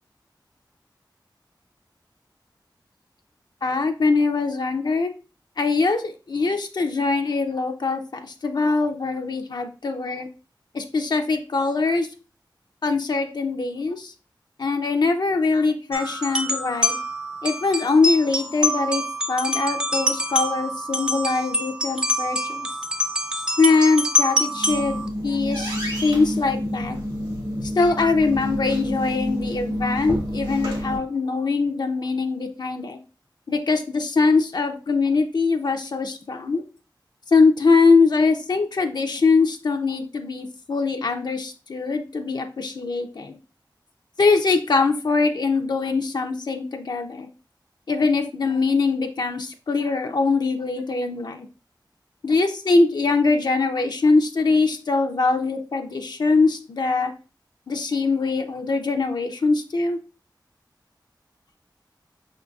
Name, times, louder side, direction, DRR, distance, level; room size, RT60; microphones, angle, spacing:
voice 1, 3.6-5.1 5.6-10.3 10.7-12.1 12.8-14.1 14.6-17.0 17.4-22.7 23.6-25.7 26.0-27.0 27.6-33.0 33.5-36.6 37.3-43.4 44.2-47.3 47.9-51.5 52.2-57.1 57.7-60.0, left 4 dB, 60° left, 5 dB, 0.4 m, -22 dB
sound 1, 15.9-25.1, left 1 dB, 10° right, 0.4 m, -26 dB
sound 2, 24.5-31.0, equal, 65° right, 1.2 m, -28 dB
5.3 x 3.7 x 2.3 m, 0.34 s
wide cardioid pair, 95°, 8 cm